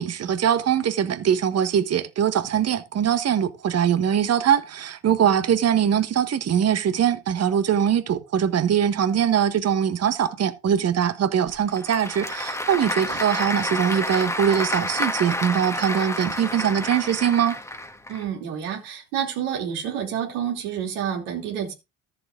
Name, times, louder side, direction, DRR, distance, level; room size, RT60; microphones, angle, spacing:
voice 1, 0.0-17.6, right 9 dB, 35° right, 1.4 m, -22 dB
Applause / Crowd, 11.5-18.2, left 1 dB, 5° left, 1.8 m, -29 dB
voice 2, 18.1-21.7, right 9 dB, 65° right, 2.9 m, -29 dB
13.5 x 7.3 x 3.7 m
hypercardioid pair, 70°, 44 cm